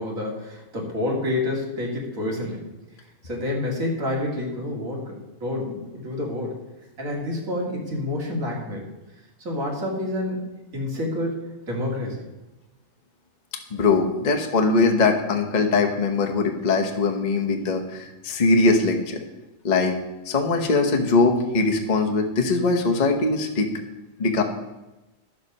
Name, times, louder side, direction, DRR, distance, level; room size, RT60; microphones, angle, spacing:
voice 1, 0.0-2.7 3.2-6.6 7.0-8.9 9.4-10.4 10.7-12.3, left 1 dB, 60° right, -1 dB, 2.7 m, -28 dB
voice 2, 13.7-19.2 19.6-20.0 20.3-23.7 24.2-24.4, left 3 dB, 30° left, 3 dB, 1.0 m, -21 dB
10.5 x 7.5 x 5.4 m, 1.0 s
omnidirectional pair, 1.6 m